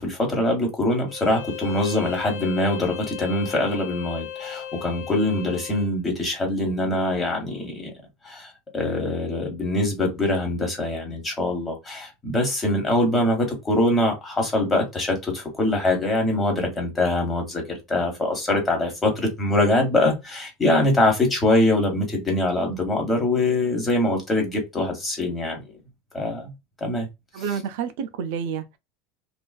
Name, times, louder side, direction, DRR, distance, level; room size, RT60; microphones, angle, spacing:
voice 1, 0.0-7.9 8.2-25.6 26.1-26.5 26.8-27.1, left 1 dB, 15° left, 1.0 m, -23 dB
Bowed string instrument, 1.1-5.9, left 10 dB, 75° left, 0.6 m, -36 dB
voice 2, 27.3-28.8, right 7 dB, 70° right, 0.4 m, -29 dB
2.4 x 2.2 x 2.3 m
supercardioid pair, 145°, 0 cm